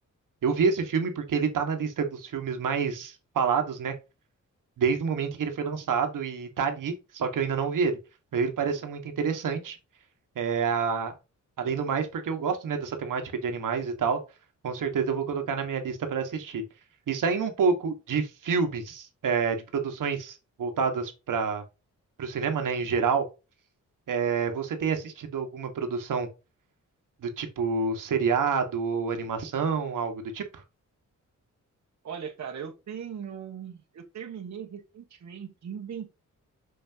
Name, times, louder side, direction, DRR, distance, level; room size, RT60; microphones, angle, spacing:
voice 1, 0.4-3.9 4.8-8.0 8.3-9.8 10.3-11.1 11.6-14.2 14.6-16.6 17.1-21.6 22.2-23.3 24.1-26.3 27.2-30.6, right 5 dB, 80° right, 1.5 m, -28 dB
voice 2, 32.0-36.2, right 7 dB, 60° right, 1.3 m, -39 dB
6.3 x 5.8 x 2.8 m
wide cardioid pair, 140°, 31 cm